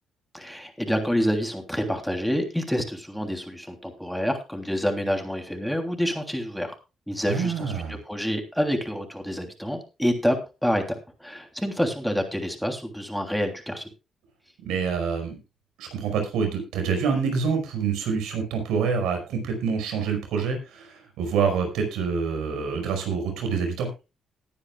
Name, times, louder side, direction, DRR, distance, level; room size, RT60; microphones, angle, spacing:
voice 1, 0.3-6.7 7.1-7.7 8.1-10.4 10.6-13.8, equal, ahead, 4 dB, 3.2 m, -27 dB
voice 2, 7.3-8.0 14.6-15.4 15.8-23.9, right 6 dB, 90° right, 4 dB, 5.2 m, -26 dB
20.0 x 9.8 x 2.4 m, 0.28 s
cardioid pair, 90°, 0 cm